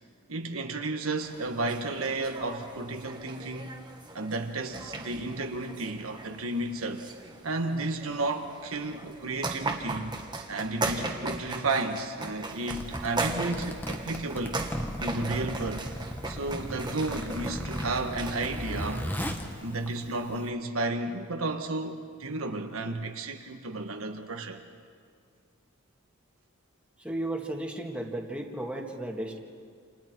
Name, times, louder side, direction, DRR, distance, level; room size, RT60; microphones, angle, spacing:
voice 1, 0.3-3.8 4.1-7.0 7.4-10.2 10.5-14.6 15.0-15.9 16.2-19.1 19.6-24.6, right 2 dB, 85° right, 1.6 m, -32 dB
sound 1, 1.2-18.7, right 2 dB, 20° right, 1.8 m, -38 dB
Zipper (clothing), 12.5-20.5, equal, 10° left, 1.5 m, -37 dB
voice 2, 27.0-29.4, right 1 dB, 5° right, 2.1 m, -34 dB
29.0 x 28.0 x 4.6 m
head